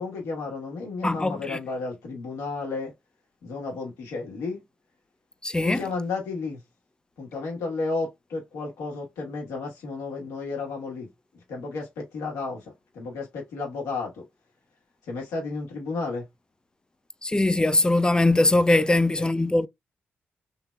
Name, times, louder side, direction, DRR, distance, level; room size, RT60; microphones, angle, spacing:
voice 1, 0.0-2.9 3.4-4.6 5.6-6.6 7.2-11.1 11.3-12.6 12.9-14.3 15.1-16.3 18.9-19.3, left 3 dB, 85° left, 1.4 m, -32 dB
voice 2, 1.0-1.6 5.4-5.8 17.2-19.7, left 2 dB, 15° left, 0.4 m, -21 dB
3.4 x 3.1 x 2.3 m
supercardioid pair, 45°, 5 cm